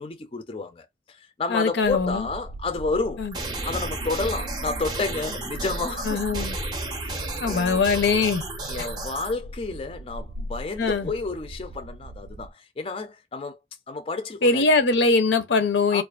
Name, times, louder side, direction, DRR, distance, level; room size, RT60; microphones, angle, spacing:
voice 1, 0.0-3.3 3.6-6.5 6.9-7.8 8.7-13.6 13.9-14.7 15.9-16.0, left 3 dB, 30° left, 0.4 m, -31 dB
voice 2, 1.5-2.3 3.2-3.3 6.0-6.6 7.4-8.4 10.8-11.1 14.4-16.0, left 4 dB, 80° left, 0.6 m, -22 dB
sound 1, 1.8-12.5, equal, 75° right, 0.4 m, -39 dB
sound 2, 3.3-9.3, right 2 dB, 25° right, 0.5 m, -33 dB
2.4 x 2.3 x 2.3 m
head